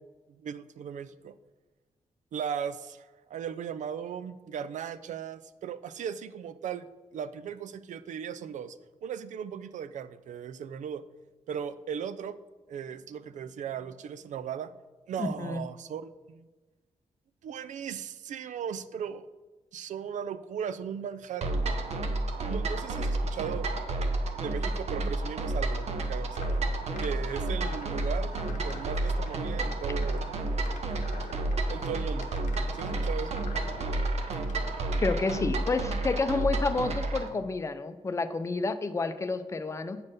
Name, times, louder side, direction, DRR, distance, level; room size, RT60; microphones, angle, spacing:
voice 1, 0.4-1.3 2.3-6.9 7.1-11.0 11.5-12.4 12.7-14.7 15.1-16.5 17.4-19.3 19.7-21.6 22.5-23.7 24.4-26.4 27.0-28.4 28.6-30.3 31.7-32.3 32.7-33.4, right 8 dB, 80° right, 14 dB, 0.4 m, -37 dB
voice 2, 15.2-15.6 35.0-40.0, left 3 dB, 25° left, 10 dB, 0.5 m, -30 dB
sound 1, 21.4-37.3, right 2 dB, 60° right, 0.9 m, -30 dB
sound 2, 26.3-34.8, left 5 dB, 90° left, 0.9 m, -47 dB
8.5 x 4.4 x 6.4 m, 1.3 s
wide cardioid pair, 145°, 12 cm